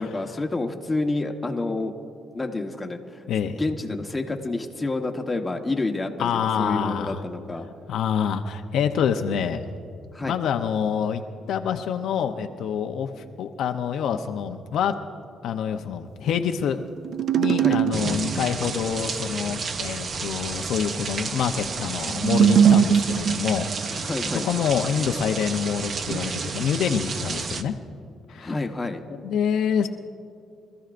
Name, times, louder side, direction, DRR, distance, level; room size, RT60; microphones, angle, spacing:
voice 1, 0.0-1.9 2.3-6.3 6.6-7.7 10.1-10.4 17.6-17.8 24.0-24.5 28.3-29.0, left 2 dB, 20° left, 3 dB, 1.2 m, -29 dB
voice 2, 3.3-3.6 6.2-7.2 7.9-9.7 10.2-14.9 15.4-16.8 17.4-24.1 24.4-27.7 28.3-28.5 29.1-29.9, left 7 dB, 75° left, 5 dB, 0.7 m, -26 dB
sound 1, 17.0-18.5 22.1-23.9, right 8 dB, 65° right, 0.4 m, -20 dB
sound 2, 17.9-27.6, right 5 dB, 50° right, 0.8 m, -31 dB
24.5 x 14.0 x 2.6 m, 2.4 s
cardioid pair, 90°, 0 cm